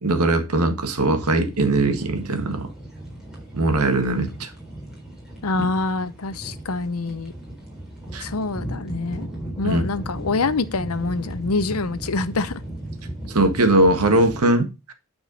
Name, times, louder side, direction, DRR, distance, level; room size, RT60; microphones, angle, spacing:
voice 1, 0.0-2.7 3.5-4.5 8.1-8.3 9.6-9.8 13.3-14.9, right 2 dB, 90° right, 1.7 m, -20 dB
sound 1, 1.1-14.4, right 1 dB, 5° right, 3.9 m, -36 dB
voice 2, 5.4-7.3 8.2-9.3 9.6-12.6, left 3 dB, 80° left, 0.8 m, -25 dB
9.4 x 4.8 x 5.4 m
head